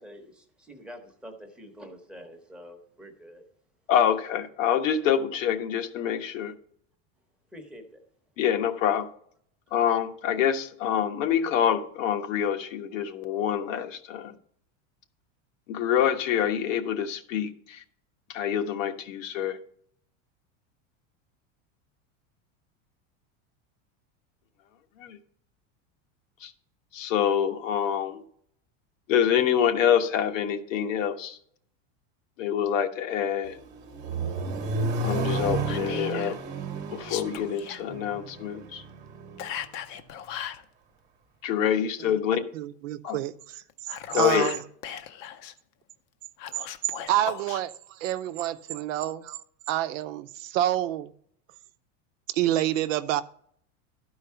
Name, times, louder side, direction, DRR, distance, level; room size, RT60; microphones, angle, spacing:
voice 1, 0.0-3.4 7.5-8.0 9.7-9.8, equal, ahead, 0.9 m, -46 dB
voice 2, 3.9-6.5 8.4-9.1 9.7-14.3 15.7-17.8 18.3-19.6 25.0-25.2 26.4-26.5 26.9-28.2 29.1-31.4 32.4-33.6 34.5-34.6 34.8-36.4 36.9-38.8 41.4-42.4 43.0-43.2 44.1-44.5, left 9 dB, 85° left, 1.3 m, -26 dB
Accelerating revving vroom, 33.4-39.5, right 3 dB, 25° right, 1.2 m, -32 dB
Whispering, 35.6-36.4 37.0-37.8 39.4-40.6 43.7-45.5 46.4-47.6, left 10 dB, 40° left, 0.6 m, -37 dB
voice 3, 42.5-44.6 47.1-49.4 49.7-51.1 52.3-53.2, right 13 dB, 85° right, 0.8 m, -28 dB
12.5 x 4.7 x 5.6 m
supercardioid pair, 170°, 38 cm